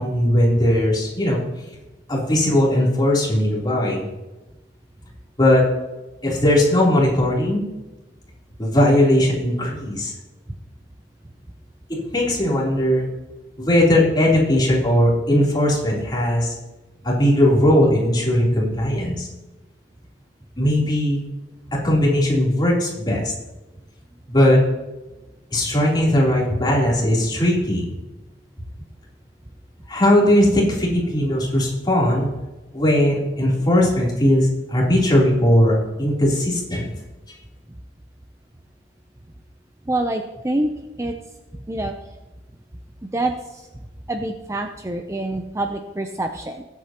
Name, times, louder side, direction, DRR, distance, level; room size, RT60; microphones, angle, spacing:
voice 1, 0.0-1.4 2.1-4.1 5.4-5.6 6.2-7.6 8.6-10.1 12.1-13.1 13.6-16.5 17.0-19.3 20.6-21.2 21.8-23.3 24.3-24.6 25.5-27.9 29.9-32.3 32.7-36.9 37.3-37.4, left 1 dB, 25° left, -5 dB, 3.5 m, -18 dB
voice 2, 39.9-40.7 41.0-41.1 41.7-41.9 43.1-43.6 44.1-46.6, right 1 dB, 15° right, 5 dB, 0.6 m, -26 dB
20.0 x 8.4 x 3.0 m, 1.1 s
head